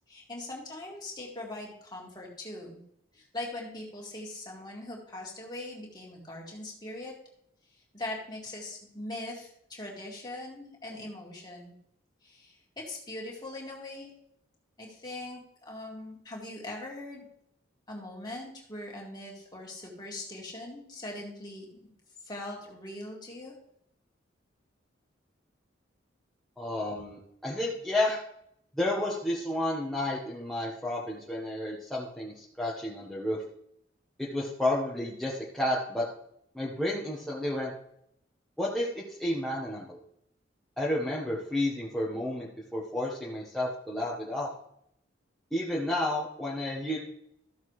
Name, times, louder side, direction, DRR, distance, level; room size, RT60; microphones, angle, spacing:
voice 1, 0.1-2.8 3.1-7.1 7.7-11.7 12.2-14.1 14.8-17.2 17.9-21.7 22.2-23.5, left 1 dB, 20° left, -2 dB, 2.1 m, -41 dB
voice 2, 26.6-28.2 28.7-33.4 34.2-36.0 36.5-37.7 38.6-40.0 40.8-44.5 45.5-47.0, left 1 dB, ahead, -6 dB, 1.1 m, -31 dB
14.0 x 6.5 x 3.2 m, 0.73 s
head